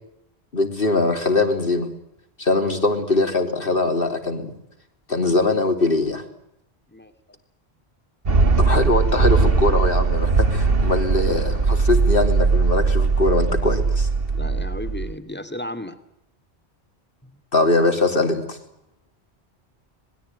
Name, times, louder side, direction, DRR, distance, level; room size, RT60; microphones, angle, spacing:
voice 1, 0.5-1.9 2.4-4.5 5.1-6.2 8.6-14.1 17.5-18.6, left 2 dB, 60° left, 6 dB, 3.5 m, -21 dB
sound 1, 8.3-15.1, right 4 dB, 60° right, 1.6 m, -19 dB
voice 2, 14.3-16.0 17.2-17.3, left 1 dB, 10° left, 8 dB, 2.4 m, -34 dB
26.5 x 21.0 x 9.3 m, 0.77 s
omnidirectional pair, 1.1 m